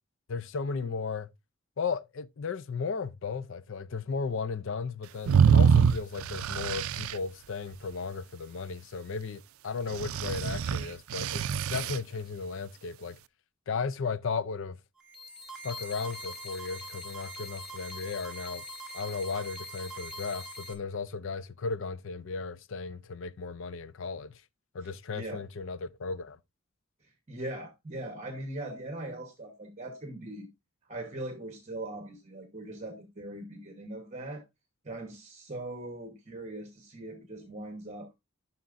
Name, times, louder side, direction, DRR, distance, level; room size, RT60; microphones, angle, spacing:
voice 1, 0.3-1.3 1.8-11.4 11.7-13.2 13.7-14.8 15.6-18.6 18.9-24.4 24.7-26.4, left 5 dB, 60° left, 0.4 m, -35 dB
sound 1, 5.3-7.1 9.9-12.0, right 7 dB, 70° right, 0.4 m, -24 dB
sound 2, 15.0-20.7, equal, 5° right, 1.2 m, -42 dB
voice 2, 24.8-25.4 27.0-30.5 30.9-34.4 34.8-38.1, right 1 dB, 30° right, 1.0 m, -40 dB
11.5 x 5.8 x 2.5 m
head